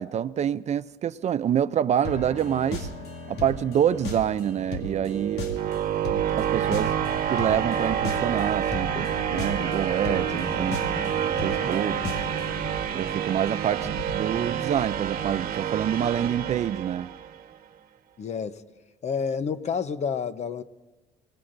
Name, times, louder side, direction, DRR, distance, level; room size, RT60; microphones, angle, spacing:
voice 1, 0.0-2.9 3.3-5.5 6.4-6.9 7.3-10.8 11.4-12.0 12.9-17.1, right 9 dB, 40° right, 0.4 m, -26 dB
sound 1, 2.0-12.7, left 2 dB, 85° left, 2.3 m, -36 dB
sound 2, 4.4-17.4, right 9 dB, 60° right, 1.2 m, -28 dB
sound 3, 6.1-15.5, left 1 dB, 65° left, 3.6 m, -42 dB
voice 2, 18.2-18.6 19.0-20.6, left 6 dB, 40° left, 0.8 m, -29 dB
29.0 x 19.0 x 2.6 m
cardioid pair, 110°, 17 cm